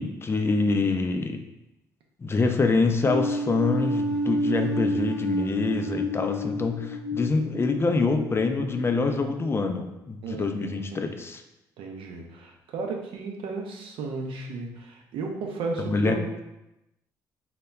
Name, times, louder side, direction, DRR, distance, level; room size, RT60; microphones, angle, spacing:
voice 1, 0.0-1.4 2.2-11.4 15.8-16.4, left 3 dB, 25° left, 6 dB, 0.3 m, -25 dB
sound 1, 3.0-9.4, left 1 dB, 90° left, 0.4 m, -30 dB
voice 2, 10.2-11.1 11.8-16.4, right 4 dB, 65° right, 2 dB, 0.5 m, -34 dB
2.1 x 2.0 x 3.3 m, 0.90 s
hypercardioid pair, 45°, 10 cm